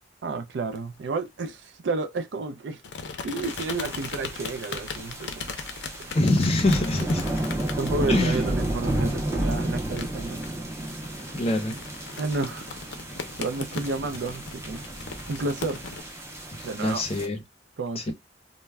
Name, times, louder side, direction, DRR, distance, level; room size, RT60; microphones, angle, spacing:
voice 1, 0.2-2.8 3.2-5.6 7.8-10.4 12.2-12.8 13.4-14.8 15.3-15.8 16.6-17.0 17.8-18.1, right 3 dB, 75° right, 0.4 m, -31 dB
sound 1, 0.7-1.5 2.8-16.0, left 5 dB, 75° left, 0.5 m, -39 dB
sound 2, 3.4-17.3, right 1 dB, 15° right, 0.5 m, -32 dB
voice 2, 6.1-7.2 8.1-8.4 11.3-11.8 16.5-17.4 18.0-18.1, left 2 dB, 35° left, 0.6 m, -24 dB
2.2 x 2.1 x 3.3 m
head